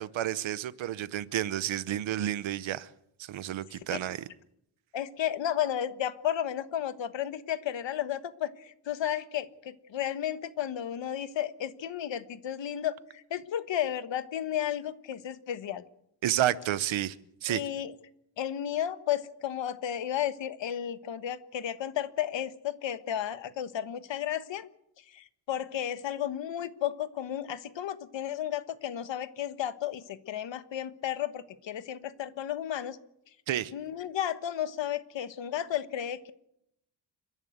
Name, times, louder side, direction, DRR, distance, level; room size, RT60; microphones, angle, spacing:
voice 1, 0.0-2.9 3.2-4.2 16.2-17.2 17.4-17.6 33.5-33.7, right 12 dB, 85° right, 1.0 m, -30 dB
voice 2, 4.9-15.8 17.5-17.9 18.4-24.7 25.1-33.0 33.7-36.3, left 10 dB, 70° left, 1.3 m, -33 dB
30.0 x 11.0 x 8.0 m
wide cardioid pair, 165°, 45 cm